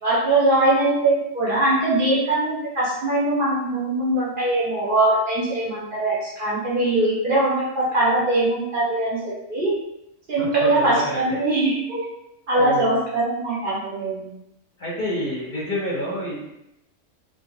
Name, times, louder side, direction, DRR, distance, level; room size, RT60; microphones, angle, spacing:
voice 1, 0.0-9.8 10.3-12.1 12.5-14.3, right 2 dB, 50° right, -7 dB, 0.8 m, -21 dB
voice 2, 10.4-11.0 12.6-12.9 14.8-16.5, left 1 dB, 45° left, -6 dB, 0.8 m, -28 dB
2.4 x 2.2 x 2.9 m, 0.84 s
omnidirectional pair, 1.3 m